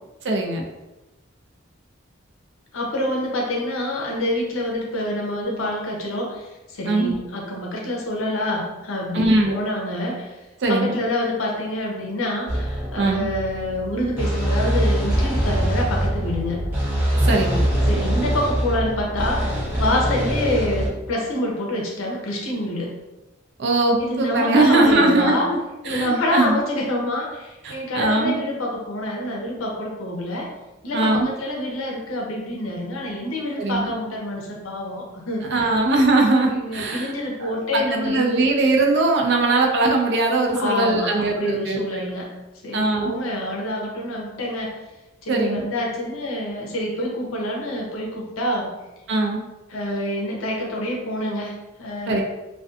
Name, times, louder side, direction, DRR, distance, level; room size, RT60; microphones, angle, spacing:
voice 1, 0.2-0.6 6.9-7.2 9.1-9.6 10.6-11.0 13.0-13.3 17.2-17.7 23.6-25.6 25.9-26.6 27.6-28.4 30.9-31.3 33.6-33.9 35.4-37.1 37.4-42.0 42.7-43.2 45.3-45.6 49.1-49.4 52.1-52.2, right 2 dB, 55° right, 2 dB, 0.4 m, -20 dB
voice 2, 2.7-10.3 10.7-16.6 17.9-22.9 24.0-25.5 25.8-30.5 30.8-35.7 36.5-38.4 40.5-42.3 42.6-44.8 45.2-48.7 49.7-52.2, left 1 dB, 80° left, -1 dB, 0.6 m, -27 dB
sound 1, 12.5-20.9, equal, 10° right, 0.8 m, -23 dB
2.5 x 2.2 x 2.4 m, 1.0 s
head